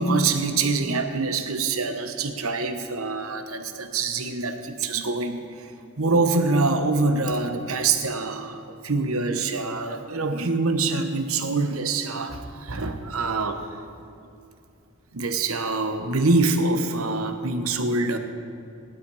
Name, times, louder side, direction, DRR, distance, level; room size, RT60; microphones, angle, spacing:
voice 1, 0.0-5.7 6.0-13.8 15.1-18.2, right 3 dB, 90° right, 7 dB, 1.2 m, -25 dB
16.5 x 11.5 x 4.9 m, 2.6 s
head